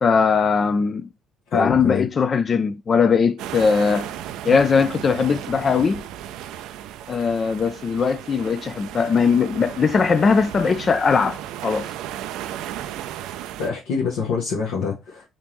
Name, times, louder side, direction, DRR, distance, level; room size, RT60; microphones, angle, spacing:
voice 1, 0.0-1.0 1.5-4.1 4.5-6.0 7.1-11.9, left 5 dB, 40° left, 0.3 m, -20 dB
voice 2, 1.5-2.1 13.6-15.3, left 5 dB, 85° left, 1.0 m, -25 dB
sound 1, 3.4-13.7, right 11 dB, 85° right, 0.3 m, -35 dB
3.5 x 2.7 x 3.0 m
supercardioid pair, 80°, 0 cm